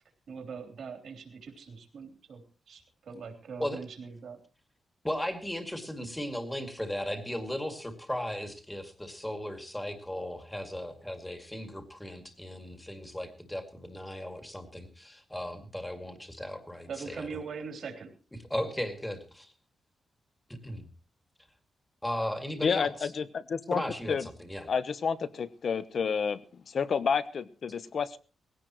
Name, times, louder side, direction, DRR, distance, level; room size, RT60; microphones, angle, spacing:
voice 1, 0.3-2.4 2.7-4.4 16.9-18.1, right 5 dB, 60° right, 6 dB, 3.3 m, -42 dB
voice 2, 5.0-17.4 18.5-19.5 20.5-20.9 22.0-23.1 23.7-24.7, left 1 dB, 5° left, 8 dB, 2.1 m, -36 dB
voice 3, 22.6-23.8 24.1-24.3 24.7-28.2, left 6 dB, 45° left, 15 dB, 0.9 m, -30 dB
19.5 x 16.5 x 3.0 m, 0.35 s
wide cardioid pair, 175°, 0 cm